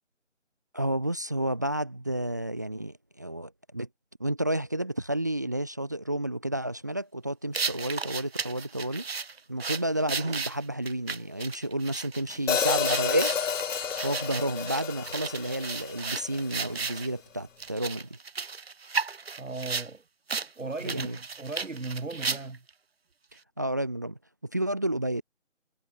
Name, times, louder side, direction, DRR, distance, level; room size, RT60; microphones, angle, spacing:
voice 1, 0.7-3.9 4.2-9.1 9.5-13.3 14.0-18.2 20.8-21.2 23.6-25.2, right 1 dB, 15° right, 0.9 m, -31 dB
sound 1, 7.5-17.1 17.6-19.9 20.3-20.5 20.8-22.7, right 5 dB, 55° right, 1.1 m, -34 dB
Hi-hat, 12.5-16.7, left 7 dB, 90° left, 0.6 m, -30 dB
voice 2, 19.4-20.0 20.6-22.7, right 3 dB, 80° right, 3.1 m, -37 dB
figure-of-eight pair, 165°, 38 cm